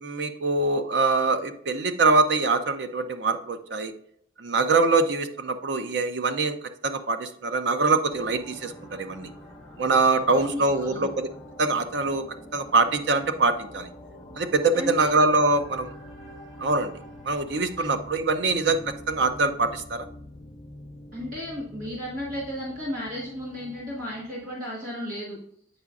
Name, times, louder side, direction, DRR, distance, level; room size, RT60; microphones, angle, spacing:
voice 1, 0.0-3.9 4.4-6.6 6.8-9.3 9.8-11.3 11.6-12.2 12.5-13.9 14.4-15.9 16.6-16.9 17.2-20.0, right 3 dB, 60° right, 8 dB, 0.6 m, -24 dB
sound 1, 8.1-24.5, left 1 dB, ahead, 1.3 m, -45 dB
voice 2, 10.3-11.1 14.7-15.1 21.1-25.4, left 1 dB, 45° right, -5 dB, 1.3 m, -34 dB
8.1 x 4.9 x 2.4 m, 0.70 s
head